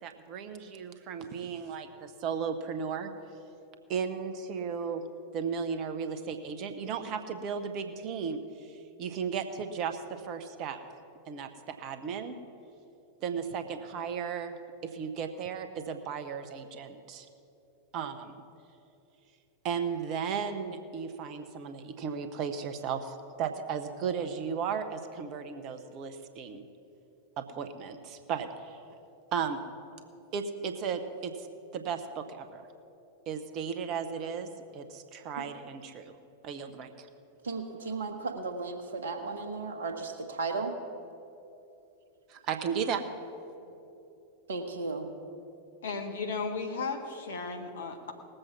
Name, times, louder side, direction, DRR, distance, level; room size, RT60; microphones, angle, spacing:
voice 1, 0.0-3.1 3.9-5.0 5.3-10.8 11.3-12.4 13.2-14.6 14.8-17.3 17.9-18.4 19.6-26.6 27.4-28.8 29.3-29.7 30.3-31.3 31.7-32.7 33.3-36.2 36.4-37.1 42.3-43.0, right 6 dB, 40° right, 8 dB, 1.0 m, -35 dB
voice 2, 37.4-40.8 44.5-45.1, right 3 dB, 65° right, 5 dB, 1.3 m, -35 dB
voice 3, 45.8-48.1, left 4 dB, 65° left, 4 dB, 1.5 m, -35 dB
19.0 x 7.8 x 5.9 m, 2.8 s
figure-of-eight pair, 90°, 0 cm